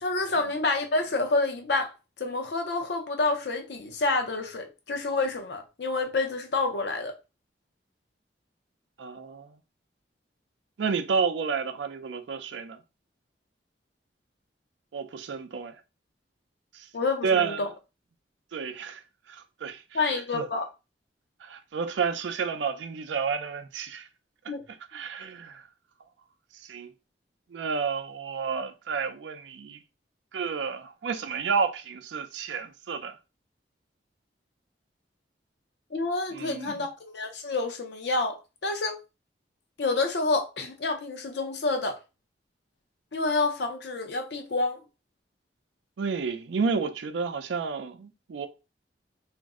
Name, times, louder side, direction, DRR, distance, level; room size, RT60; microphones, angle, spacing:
voice 1, 0.0-7.1 16.9-17.7 19.9-20.7 24.5-24.6 35.9-39.0 39.8-42.0 43.1-44.8, left 3 dB, 65° left, 0.6 m, -28 dB
voice 2, 9.0-9.5 10.8-12.8 14.9-15.8 16.7-16.9 17.2-17.7 18.5-19.0 19.3-20.5 21.4-24.1 24.9-25.6 26.5-26.9 27.5-29.8 30.3-33.2 36.3-36.7 46.0-48.5, right 5 dB, 85° right, 0.4 m, -30 dB
2.5 x 2.0 x 3.5 m
head